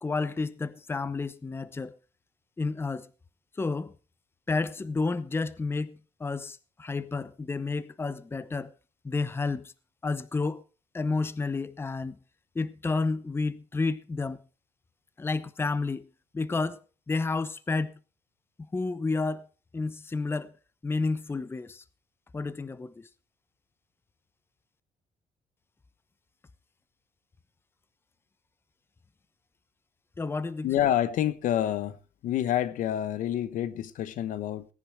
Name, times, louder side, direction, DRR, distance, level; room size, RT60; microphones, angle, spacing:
voice 1, 0.0-1.9 2.6-3.1 3.6-3.9 4.5-8.7 9.0-9.7 10.0-10.6 10.9-12.2 12.5-14.4 15.2-16.1 16.3-16.8 17.1-18.0 18.7-19.5 19.7-20.5 20.8-21.8 22.3-23.1 30.2-30.7, left 3 dB, 15° left, 0.8 m, -30 dB
voice 2, 30.6-32.0 32.2-34.7, left 11 dB, 70° left, 1.1 m, -28 dB
18.0 x 10.0 x 4.6 m
cardioid pair, 110°, 14 cm